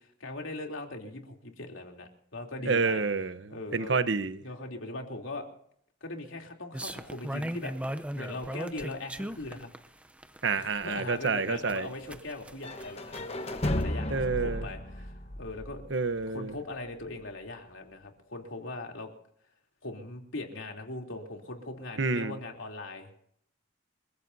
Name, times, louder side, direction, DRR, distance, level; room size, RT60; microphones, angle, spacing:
voice 1, 0.0-3.0 3.5-4.0 4.4-5.5 6.0-9.7 10.6-15.8 16.3-19.1 19.8-23.1, left 2 dB, 85° left, 3.3 m, -40 dB
voice 2, 2.7-4.4 10.4-11.9 14.1-14.7 15.9-16.5 22.0-22.4, right 4 dB, 65° right, 1.0 m, -29 dB
sound 1, 6.7-13.8, right 1 dB, 5° right, 0.7 m, -38 dB
sound 2, 12.6-16.5, left 1 dB, 30° left, 1.1 m, -34 dB
28.5 x 15.5 x 2.8 m
head